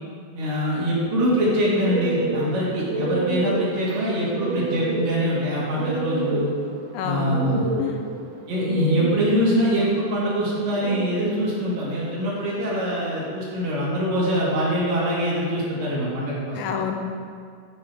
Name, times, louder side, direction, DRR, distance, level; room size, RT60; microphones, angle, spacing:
voice 1, 0.3-6.5 7.0-7.7 8.5-16.6, equal, 50° right, -7 dB, 3.8 m, -24 dB
sound 1, 1.8-13.3, right 3 dB, 85° right, 1.8 m, -31 dB
voice 2, 6.9-8.0 16.5-17.0, left 7 dB, 85° left, 4 dB, 2.9 m, -28 dB
11.5 x 10.0 x 5.0 m, 2.1 s
omnidirectional pair, 5.3 m